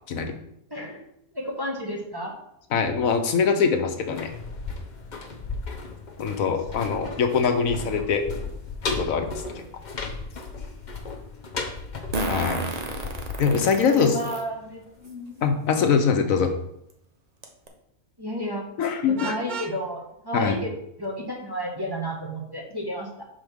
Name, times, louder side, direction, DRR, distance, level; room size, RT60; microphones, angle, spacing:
voice 1, 1.3-2.3 13.9-15.4 18.2-18.7 19.0-20.7 21.0-23.2, equal, 15° right, -2 dB, 1.2 m, -32 dB
voice 2, 2.7-4.3 6.2-8.2 9.0-9.3 12.3-12.6 13.4-14.1 15.4-16.5 18.8-19.4 20.3-20.5, left 6 dB, 70° left, 6 dB, 1.2 m, -23 dB
sound 1, 3.9-14.7 15.0-15.1, left 3 dB, 40° left, 0.8 m, -35 dB
Fart, 9.4-9.5 12.1-14.4 15.1-15.2 16.4-16.5 16.9-17.0 17.4-17.7, right 2 dB, 35° right, 0.8 m, -31 dB
Vehicle horn car horn honking, 19.2-19.8, right 6 dB, 85° right, 0.4 m, -34 dB
5.2 x 4.6 x 6.2 m, 0.76 s
omnidirectional pair, 1.5 m